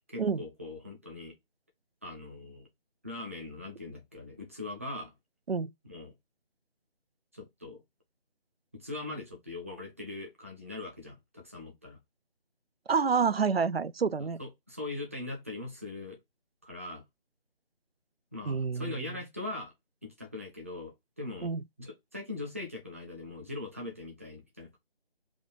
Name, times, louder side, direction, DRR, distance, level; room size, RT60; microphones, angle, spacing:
voice 1, 0.1-1.3 2.0-2.7 3.0-5.1 5.8-6.1 7.3-7.8 8.7-12.0 14.2-16.2 16.6-17.0 18.3-19.7 20.0-21.5 21.8-24.8, left 2 dB, 15° right, 0.6 m, -41 dB
voice 2, 12.9-14.4 18.5-19.0 21.4-21.6, right 5 dB, 80° right, 0.6 m, -28 dB
3.6 x 2.6 x 4.6 m
figure-of-eight pair, 155°, 30 cm